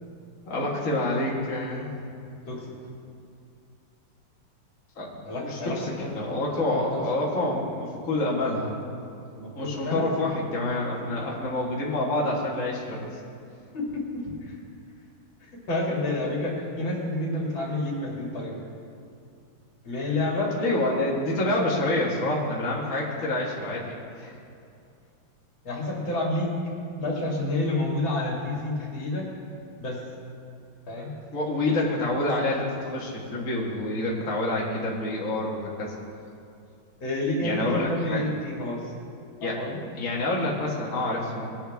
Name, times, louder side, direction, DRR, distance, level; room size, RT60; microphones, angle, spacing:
voice 1, 0.5-1.9 5.0-8.8 9.6-13.1 20.6-24.4 31.3-35.9 37.4-38.3 39.4-39.6 39.9-41.5, left 2 dB, 40° left, -4 dB, 1.9 m, -27 dB
voice 2, 5.2-6.1 6.5-7.0 9.4-10.1 13.7-14.5 15.5-18.6 19.8-20.5 25.6-26.6 27.0-29.3 29.8-30.0 30.9-31.1 37.0-38.8 39.4-39.8, left 2 dB, 75° left, -3 dB, 3.0 m, -29 dB
19.5 x 8.4 x 3.5 m, 2.5 s
omnidirectional pair, 2.2 m